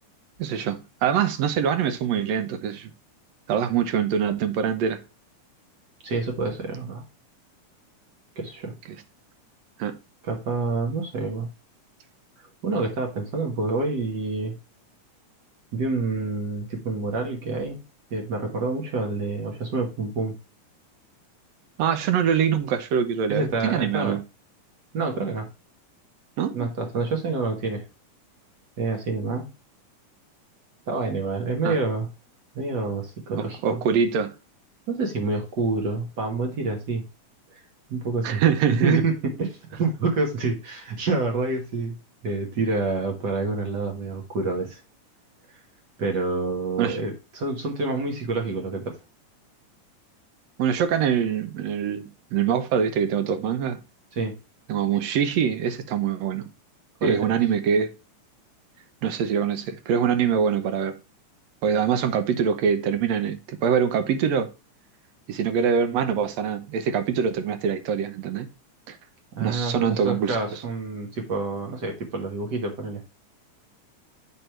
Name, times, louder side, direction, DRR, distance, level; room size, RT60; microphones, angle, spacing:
voice 1, 0.4-2.9 3.5-5.0 9.8-9.9 21.8-24.2 26.4-26.7 31.6-31.8 33.3-34.3 38.2-39.0 46.8-47.0 50.6-53.8 54.7-56.5 57.0-57.9 59.0-60.9 61.6-64.5 65.3-68.5 68.9-69.0 69.4-70.6, right 7 dB, 70° right, 1.7 m, -24 dB
voice 2, 6.0-7.0 8.3-8.8 10.2-11.5 12.6-14.6 15.7-17.8 18.1-20.4 23.3-24.2 24.9-25.5 26.5-27.8 28.8-29.5 30.9-32.1 32.5-33.8 34.9-37.1 37.5-37.6 37.9-38.4 38.8-41.9 42.2-44.8 45.5-45.6 46.0-49.0 54.1-54.4 57.0-57.4 69.3-73.0, right 3 dB, 50° right, 1.3 m, -27 dB
8.3 x 3.6 x 4.5 m
omnidirectional pair, 3.7 m